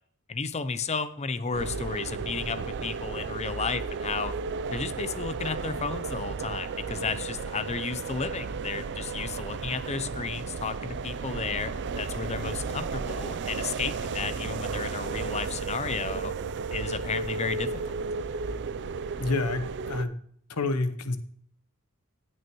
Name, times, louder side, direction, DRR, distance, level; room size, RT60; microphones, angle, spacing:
voice 1, 0.3-4.3 4.7-11.7 12.0-16.3 16.7-17.8, left 5 dB, 30° left, 0.6 m, -33 dB
sound 1, 1.5-20.0, right 4 dB, 55° right, 0.4 m, -34 dB
voice 2, 19.2-20.1 20.5-21.2, left 3 dB, 85° left, 0.9 m, -28 dB
17.5 x 6.2 x 3.1 m
head